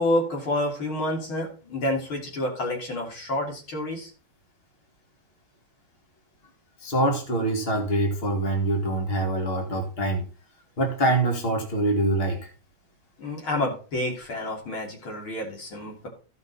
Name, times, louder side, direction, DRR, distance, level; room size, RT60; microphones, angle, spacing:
voice 1, 0.0-4.1 13.2-16.1, left 1 dB, 80° left, 0 dB, 3.8 m, -29 dB
voice 2, 6.8-10.3 10.8-12.5, right 1 dB, 30° left, 2 dB, 2.2 m, -24 dB
15.0 x 5.6 x 4.1 m, 0.36 s
omnidirectional pair, 2.2 m